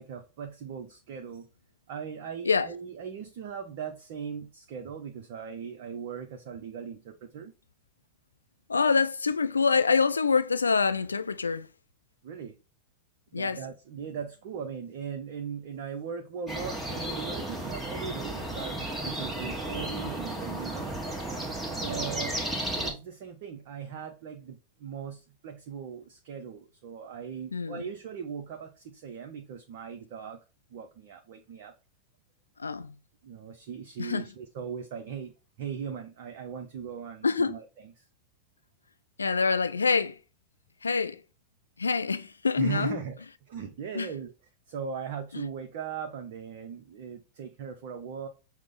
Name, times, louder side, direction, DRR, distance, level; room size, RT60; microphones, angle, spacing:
voice 1, 0.0-1.5 1.9-7.5 12.2-12.5 13.3-20.9 21.7-22.4 22.7-30.4 30.7-31.7 33.2-35.3 35.6-38.0 42.6-43.1 43.5-44.3 44.7-48.3, right 7 dB, 50° right, 0.5 m, -39 dB
voice 2, 8.7-11.7 13.3-13.6 27.5-27.8 32.6-32.9 34.0-34.2 37.2-37.5 39.2-40.2 40.8-41.2 41.8-43.0 43.9-44.1 45.3-45.4, left 5 dB, 75° left, 0.4 m, -26 dB
sound 1, 16.5-22.9, right 1 dB, 5° right, 1.1 m, -34 dB
6.0 x 2.0 x 3.9 m
figure-of-eight pair, 90°, 0 cm